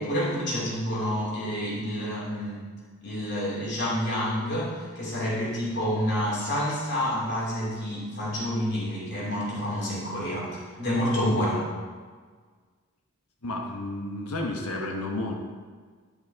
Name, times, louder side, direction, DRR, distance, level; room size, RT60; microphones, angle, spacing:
voice 1, 0.0-2.6 3.0-10.5 10.8-11.6, equal, 50° left, -5 dB, 2.6 m, -28 dB
voice 2, 13.4-15.3, left 2 dB, 85° left, 1 dB, 1.1 m, -31 dB
11.0 x 5.4 x 4.6 m, 1.5 s
head